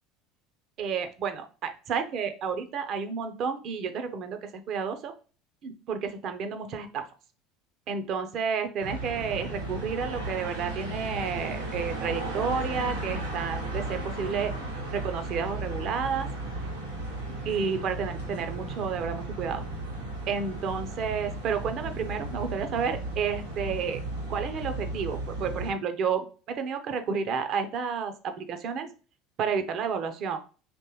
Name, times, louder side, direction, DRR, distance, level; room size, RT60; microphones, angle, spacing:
voice 1, 0.8-5.1 5.6-7.1 7.9-14.5 14.9-16.3 17.4-19.6 20.3-24.0 24.3-28.9 29.4-30.4, right 6 dB, 50° right, 8 dB, 0.8 m, -31 dB
sound 1, 8.8-25.7, right 2 dB, 90° right, 1.7 m, -35 dB
5.2 x 3.0 x 3.0 m, 0.36 s
hypercardioid pair, 70°, 0 cm